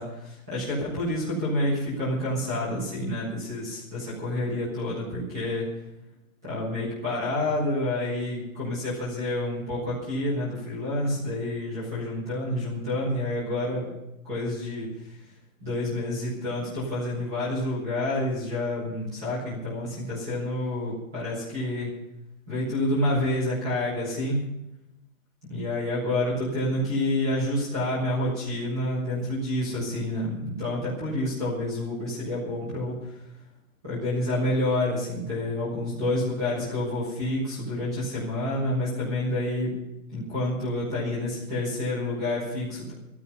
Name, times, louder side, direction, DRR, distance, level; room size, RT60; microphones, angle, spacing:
voice 1, 0.0-5.7 6.4-13.9 14.2-14.9 15.6-21.9 22.5-24.4 25.5-33.2 33.8-39.7 40.1-42.9, left 1 dB, ahead, -9 dB, 0.6 m, -28 dB
14.0 x 13.5 x 5.3 m, 0.89 s
hypercardioid pair, 180°, 43 cm